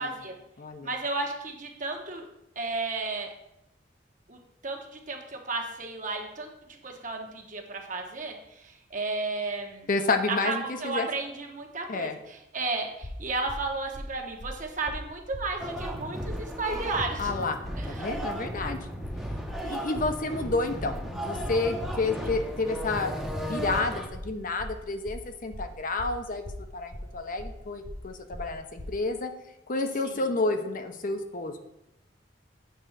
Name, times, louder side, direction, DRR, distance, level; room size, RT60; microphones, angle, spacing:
voice 1, 0.0-0.4 0.8-2.3 2.5-3.3 4.3-6.5 6.8-9.9 10.3-17.3 17.8-18.1 30.0-30.2, right 3 dB, 45° right, 3 dB, 1.2 m, -33 dB
voice 2, 0.6-0.9 9.9-11.1 11.9-12.2 17.2-17.6 17.9-18.8 19.6-26.4 26.7-29.3 29.7-31.6, left 3 dB, 50° left, 7 dB, 0.7 m, -30 dB
sound 1, 13.0-28.9, equal, 80° left, 2.5 m, -41 dB
sound 2, 15.6-24.1, equal, ahead, 0.8 m, -35 dB
7.8 x 3.7 x 6.5 m, 0.86 s
head